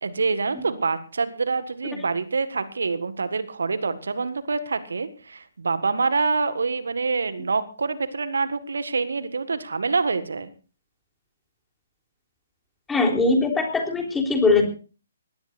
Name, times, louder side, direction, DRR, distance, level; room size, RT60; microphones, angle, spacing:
voice 1, 0.0-10.5, right 4 dB, 70° right, 12 dB, 1.7 m, -26 dB
voice 2, 12.9-14.6, left 3 dB, 10° left, 2 dB, 3.6 m, -21 dB
21.5 x 18.5 x 2.6 m, 0.35 s
figure-of-eight pair, 135°, 0 cm